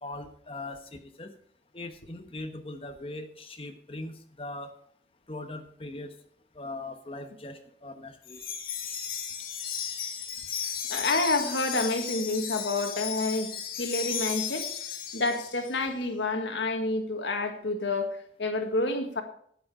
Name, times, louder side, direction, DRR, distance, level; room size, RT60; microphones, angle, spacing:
voice 1, 0.0-1.3 1.7-4.7 5.3-6.1 6.5-8.4, left 2 dB, 30° left, 7 dB, 1.1 m, -40 dB
Wind chime, 8.2-15.7, left 8 dB, 55° left, 2.2 m, -35 dB
voice 2, 10.9-13.5 13.8-14.7 15.1-19.2, left 2 dB, 85° left, 5 dB, 1.7 m, -29 dB
11.0 x 8.9 x 4.8 m, 0.63 s
head